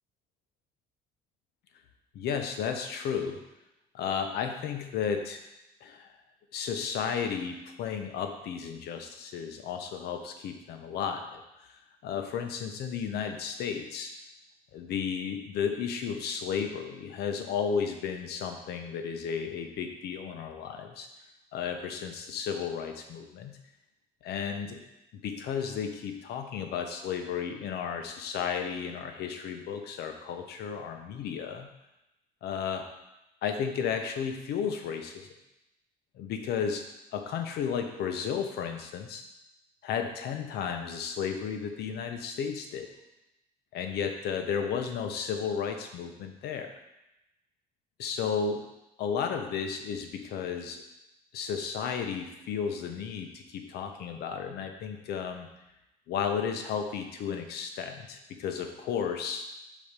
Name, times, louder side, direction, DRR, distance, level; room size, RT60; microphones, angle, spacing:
voice 1, 2.1-3.4 3.9-5.4 5.8-6.1 6.5-11.4 11.7-14.1 14.7-21.1 21.5-23.6 24.2-24.8 25.1-31.7 32.4-32.8 33.4-35.3 36.1-36.8 37.1-39.2 39.8-42.9 43.7-46.7 48.0-48.6 49.0-50.8 51.3-55.5 56.1-59.4, left 7 dB, 75° left, 5 dB, 0.9 m, -33 dB
5.3 x 4.2 x 5.1 m, 0.92 s
cardioid pair, 110°, 17 cm